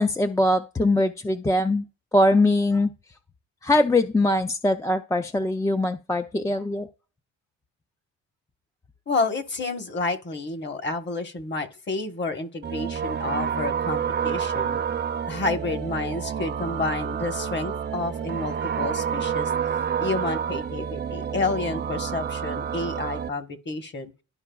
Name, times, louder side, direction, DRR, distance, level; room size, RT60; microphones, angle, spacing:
voice 1, 0.0-1.9 2.1-2.9 3.6-6.9, left 1 dB, 10° left, 0.4 m, -22 dB
voice 2, 9.1-14.8 15.3-19.5 20.0-24.1, left 3 dB, 35° left, 1.2 m, -30 dB
sound 1, 12.6-23.3, right 8 dB, 35° right, 0.7 m, -29 dB
12.0 x 4.6 x 2.3 m
cardioid pair, 90°, 30 cm